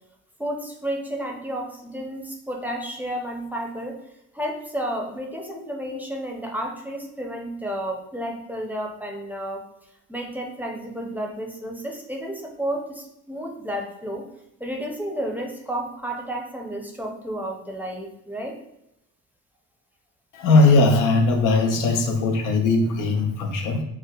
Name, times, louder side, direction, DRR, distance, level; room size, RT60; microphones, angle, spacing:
voice 1, 0.4-4.0 4.3-9.6 10.1-14.3 14.6-18.6, right 1 dB, 5° right, 0 dB, 0.6 m, -31 dB
voice 2, 20.3-23.8, left 3 dB, 75° left, 3 dB, 0.7 m, -19 dB
4.6 x 2.2 x 2.3 m, 0.86 s
supercardioid pair, 90°, 32 cm